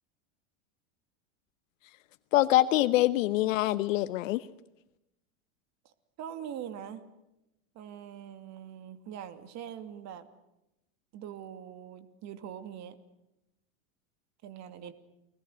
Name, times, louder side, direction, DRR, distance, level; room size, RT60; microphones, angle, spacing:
voice 1, 2.3-4.4, left 16 dB, 75° left, 12 dB, 1.0 m, -25 dB
voice 2, 6.2-7.0 7.7-10.3 11.1-13.0 14.4-14.9, right 9 dB, 45° right, 10 dB, 2.7 m, -43 dB
29.5 x 20.0 x 8.0 m, 0.90 s
supercardioid pair, 120°, 39 cm